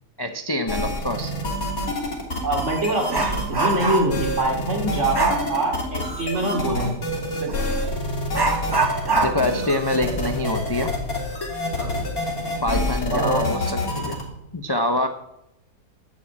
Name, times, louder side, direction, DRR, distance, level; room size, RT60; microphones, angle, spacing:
voice 1, 0.2-1.3 9.2-10.9 12.6-14.2 14.5-15.1, left 1 dB, 25° left, 6 dB, 0.5 m, -25 dB
sound 1, 0.7-14.2, left 1 dB, 65° left, 3.4 m, -27 dB
Dog, 1.8-1.9 2.3-4.3 5.1-5.5 7.5-7.6 8.3-11.6 11.9-12.0 12.6-12.7 13.3-13.7 14.1-14.3, right 3 dB, 20° right, 0.6 m, -25 dB
voice 2, 2.4-7.0 7.4-7.8 11.8-12.0 13.1-13.4, right 1 dB, 45° right, 2 dB, 3.0 m, -24 dB
11.5 x 7.7 x 8.6 m, 0.85 s
omnidirectional pair, 1.7 m